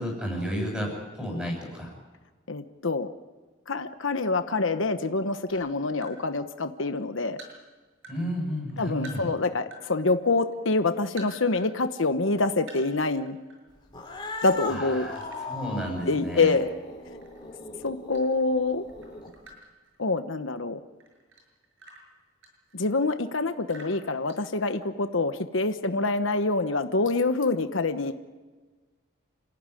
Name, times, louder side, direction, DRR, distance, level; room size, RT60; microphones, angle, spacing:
voice 1, 0.0-1.9 8.1-9.3 14.7-16.5, equal, 5° right, 0 dB, 7.5 m, -32 dB
voice 2, 2.5-3.1 3.7-7.4 8.8-13.4 14.4-15.1 16.1-16.7 17.8-18.8 20.0-20.8 22.7-28.1, left 3 dB, 75° left, 8 dB, 1.1 m, -26 dB
sound 1, 5.5-6.2 6.7-8.2 8.5-9.9 10.2-11.7 12.0-12.1 12.6-13.6 13.9-14.1 15.1-16.8 17.2-18.6 18.9-20.5 21.0-23.1 23.6-25.0, right 2 dB, 80° right, 6.7 m, -49 dB
Cat, 13.9-19.5, left 3 dB, 25° left, 3.6 m, -39 dB
28.0 x 15.5 x 9.9 m, 1.4 s
head